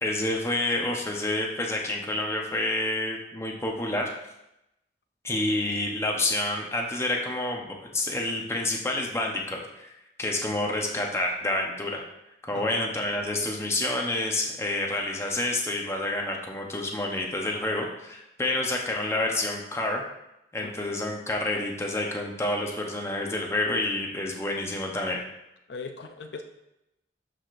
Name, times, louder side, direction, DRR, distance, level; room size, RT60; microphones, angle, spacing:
voice 1, 0.0-4.1 5.2-12.0 12.4-20.0 20.5-25.2, left 2 dB, 15° left, 0 dB, 0.8 m, -28 dB
voice 2, 12.5-12.8 20.6-20.7 25.7-26.4, left 4 dB, 65° left, 5 dB, 0.5 m, -39 dB
12.0 x 5.0 x 2.5 m, 0.88 s
head